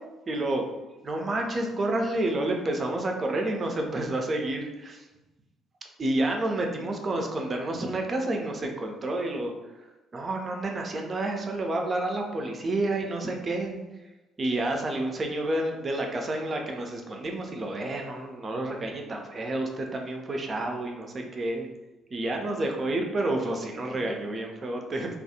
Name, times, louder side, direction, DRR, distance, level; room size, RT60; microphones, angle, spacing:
voice 1, 0.3-0.6 1.0-5.1 6.0-9.5 9.8-9.9 10.1-13.8 14.4-21.7 22.1-25.1, right 2 dB, 35° right, 2 dB, 0.4 m, -29 dB
2.3 x 2.0 x 2.8 m, 1.1 s
figure-of-eight pair, 45°, 0 cm